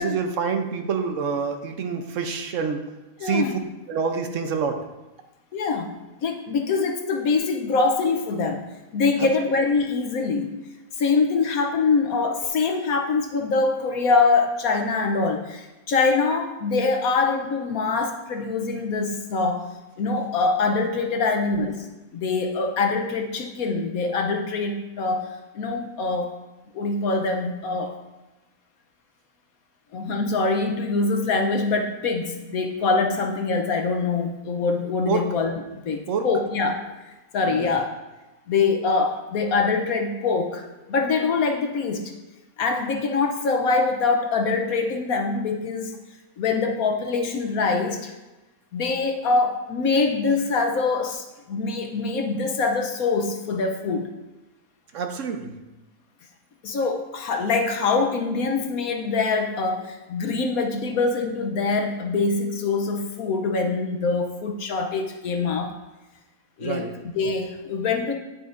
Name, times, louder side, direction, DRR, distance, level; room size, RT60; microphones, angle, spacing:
voice 1, 0.0-2.8 3.2-3.5 3.9-4.8 9.2-9.3 35.1-35.3 36.1-36.3 37.4-37.7 54.9-55.6 66.6-66.9, right 5 dB, 60° right, 6 dB, 0.9 m, -27 dB
voice 2, 3.2-3.6 5.5-5.9 6.2-10.5 11.0-19.7 20.0-21.8 22.1-26.3 26.7-27.9 29.9-36.9 37.3-38.0 38.5-42.1 42.6-46.0 46.4-48.1 48.7-54.1 56.6-65.7 66.6-68.1, left 4 dB, 65° left, 4 dB, 1.1 m, -24 dB
9.3 x 9.1 x 2.5 m, 1.1 s
omnidirectional pair, 1.8 m